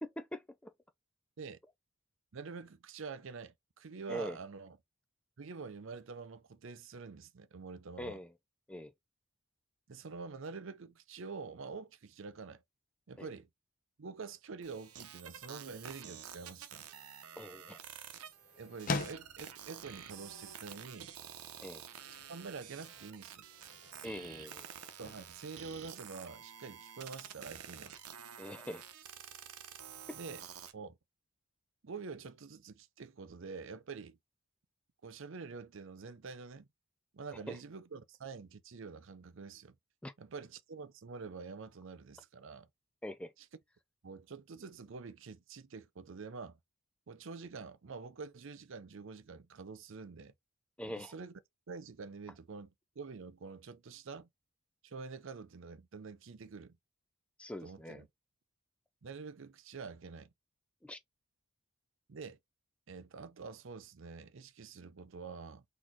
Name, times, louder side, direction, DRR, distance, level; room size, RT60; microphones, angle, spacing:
voice 1, 0.0-0.7 4.1-4.4 8.0-8.3 8.7-8.9 13.2-13.3 17.4-17.8 21.6-21.8 24.0-24.7 28.4-28.8 30.1-30.2 37.5-37.6 40.0-40.1 43.0-43.3 50.8-51.1 57.4-58.0 60.8-61.0, equal, 5° left, 0.3 m, -43 dB
voice 2, 2.3-4.8 5.4-8.2 9.9-12.6 13.1-13.5 14.0-16.8 18.6-21.1 22.3-23.4 25.0-28.0 30.1-30.4 30.7-31.0 31.8-34.2 35.0-36.7 37.1-39.8 40.2-42.7 43.4-43.5 44.0-46.6 47.1-50.3 50.8-51.3 51.7-52.7 53.0-54.3 54.8-56.8 57.6-58.1 59.0-60.3 62.1-62.4 62.9-65.6, right 4 dB, 60° right, 0.5 m, -47 dB
sound 1, 14.6-30.7, right 8 dB, 90° right, 0.8 m, -50 dB
sound 2, 16.8-26.6, left 3 dB, 40° left, 0.7 m, -46 dB
4.2 x 2.9 x 3.7 m
head